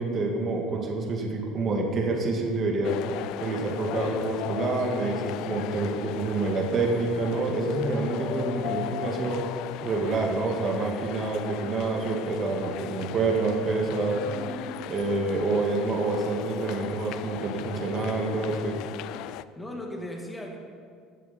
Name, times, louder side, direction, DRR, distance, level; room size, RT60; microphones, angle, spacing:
voice 1, 0.0-2.9 3.4-9.4 9.8-14.2 14.9-18.8, right 3 dB, 30° right, 1 dB, 1.8 m, -27 dB
sound 1, 2.8-19.4, left 13 dB, 60° left, 0.3 m, -37 dB
voice 2, 14.1-14.7 19.6-20.6, left 1 dB, 10° left, 0 dB, 1.8 m, -37 dB
15.5 x 8.8 x 4.3 m, 2.1 s
cardioid pair, 145°, 0 cm